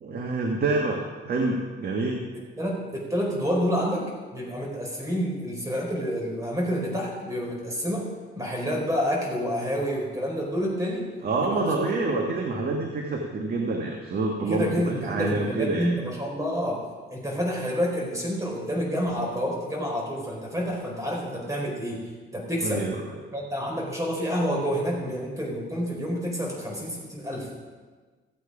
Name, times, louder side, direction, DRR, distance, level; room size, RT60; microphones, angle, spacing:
voice 1, 0.0-2.2 11.2-16.0 22.6-23.2, right 3 dB, 50° right, 1 dB, 1.5 m, -27 dB
voice 2, 2.6-4.0 4.3-8.1 8.3-11.0 11.4-11.9 14.4-16.8 17.1-22.0 22.3-22.9 23.3-27.5, equal, 15° right, -2 dB, 4.8 m, -28 dB
15.0 x 8.4 x 4.9 m, 1.4 s
cardioid pair, 90°, 20 cm